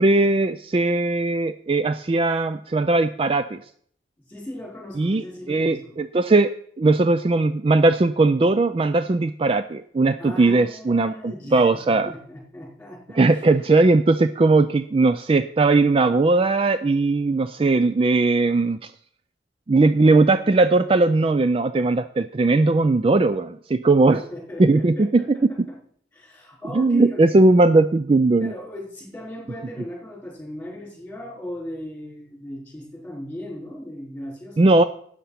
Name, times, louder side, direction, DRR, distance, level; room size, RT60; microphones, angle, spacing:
voice 1, 0.0-3.6 5.0-6.5 6.8-12.1 13.2-18.9 19.7-24.2 24.6-25.5 26.7-28.5 34.6-34.8, right 3 dB, 30° right, 12 dB, 0.4 m, -19 dB
voice 2, 4.2-5.9 7.3-7.4 10.2-13.5 24.1-25.8 26.1-27.4 28.4-34.7, equal, 10° left, -2 dB, 4.9 m, -37 dB
12.5 x 8.6 x 5.8 m, 0.63 s
head